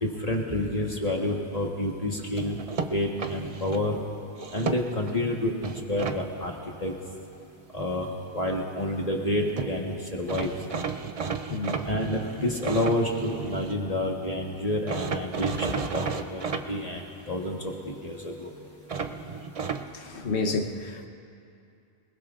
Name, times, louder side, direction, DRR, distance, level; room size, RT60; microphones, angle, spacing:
voice 1, 0.0-2.6 2.9-4.0 4.5-6.5 6.8-6.9 7.7-8.1 8.3-10.5 11.8-17.0 17.3-18.5, left 1 dB, 35° left, -1 dB, 1.4 m, -29 dB
sound 1, 2.4-3.8 4.3-5.1 5.6-6.2 9.3-9.4 9.6-9.7 10.3-13.8 14.9-16.6 18.9-19.8, right 5 dB, 40° right, 0.6 m, -33 dB
voice 2, 11.5-11.8 19.9-21.1, left 3 dB, 90° left, 4 dB, 1.3 m, -30 dB
27.0 x 20.0 x 2.5 m, 2.5 s
omnidirectional pair, 1.1 m